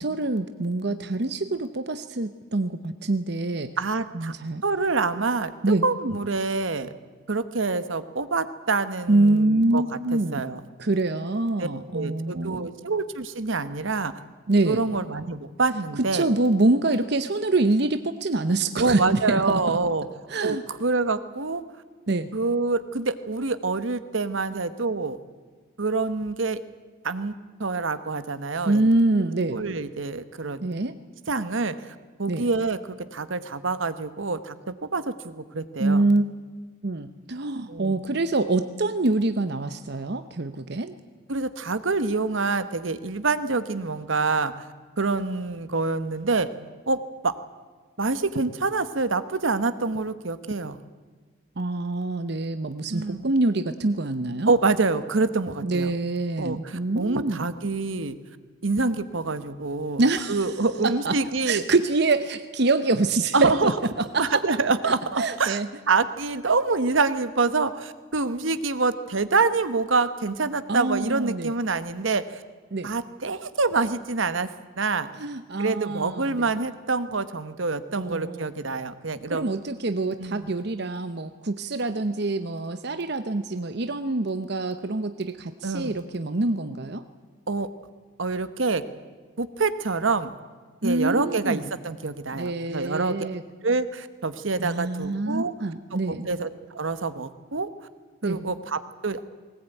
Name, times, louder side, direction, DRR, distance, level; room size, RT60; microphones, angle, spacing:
voice 1, 0.0-3.7 4.1-4.6 5.6-5.8 9.1-10.4 10.8-12.7 14.5-14.8 16.1-19.8 20.3-20.6 22.1-22.3 28.6-29.6 30.6-30.9 32.3-32.4 35.8-36.3 36.8-41.0 51.6-54.5 55.6-57.5 60.0-60.5 61.0-61.1 61.4-63.7 64.0-64.4 64.9-65.7 70.7-71.5 72.7-72.9 75.2-76.5 78.0-78.5 79.3-87.0 90.8-91.7 92.3-93.4 94.6-96.3 98.2-98.4, right 2 dB, 55° right, 10 dB, 0.8 m, -25 dB
voice 2, 3.8-4.3 4.6-6.9 7.3-9.8 10.1-10.6 11.6-11.7 11.9-14.1 14.7-16.3 18.8-20.1 20.4-21.6 22.3-25.2 25.8-26.6 27.0-27.3 27.6-28.9 29.5-30.7 31.3-36.0 37.7-38.0 41.3-44.5 45.0-46.5 46.9-47.4 48.0-50.8 52.9-53.3 54.5-55.9 56.4-58.2 58.6-60.0 60.3-61.6 63.3-63.7 64.2-65.6 65.9-72.4 72.8-74.5 74.8-75.1 75.6-79.5 80.2-80.5 85.6-86.0 87.5-87.7 88.2-88.8 89.4-90.3 90.8-93.3 93.6-95.5 96.1-97.7 98.2-99.2, right 3 dB, 75° right, 12 dB, 1.2 m, -26 dB
20.0 x 19.0 x 9.1 m, 1.5 s
head